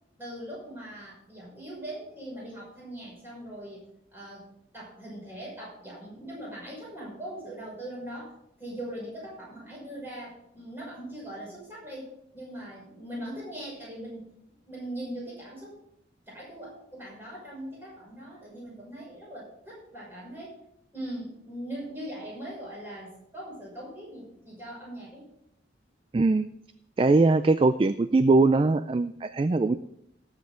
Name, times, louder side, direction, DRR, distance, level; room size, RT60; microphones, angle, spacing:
voice 1, 0.2-3.8 4.1-8.3 8.6-14.3 14.6-15.8 16.3-20.6 20.9-25.3, right 1 dB, 10° right, -5 dB, 5.8 m, -40 dB
voice 2, 26.1-26.5 27.0-29.8, right 3 dB, 30° right, 12 dB, 0.3 m, -21 dB
18.0 x 7.4 x 3.8 m, 0.75 s
head